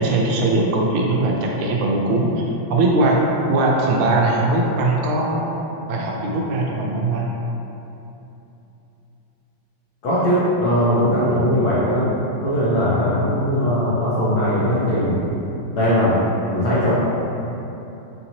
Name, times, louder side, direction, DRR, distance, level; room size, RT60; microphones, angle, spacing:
voice 1, 0.0-5.6 5.9-7.3, right 2 dB, 90° right, -2 dB, 1.5 m, -20 dB
voice 2, 10.0-12.1 12.4-15.2 15.7-16.2 16.5-16.9, equal, 65° left, -9 dB, 1.0 m, -19 dB
4.5 x 2.8 x 2.7 m, 3.0 s
omnidirectional pair, 2.3 m